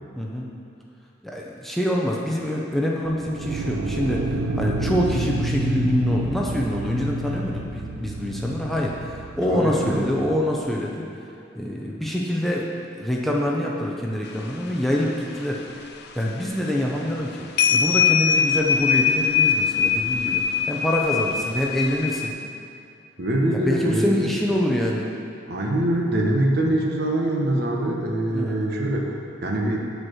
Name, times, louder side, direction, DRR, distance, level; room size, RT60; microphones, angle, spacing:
voice 1, 0.2-0.5 1.2-11.1 11.6-12.7 13.0-15.6 16.2-22.3 23.5-25.1 28.3-28.6, equal, ahead, -3 dB, 0.6 m, -25 dB
sound 1, 3.1-10.3, right 2 dB, 85° right, 0.5 m, -29 dB
voice 2, 9.5-10.1 23.2-24.3 25.5-29.8, right 1 dB, 55° right, 0 dB, 1.1 m, -24 dB
sound 2, 14.3-15.1 15.4-15.8 16.1-16.2 16.9-17.3 17.6-22.3, left 7 dB, 55° left, 0.5 m, -22 dB
9.2 x 4.5 x 6.3 m, 2.6 s
head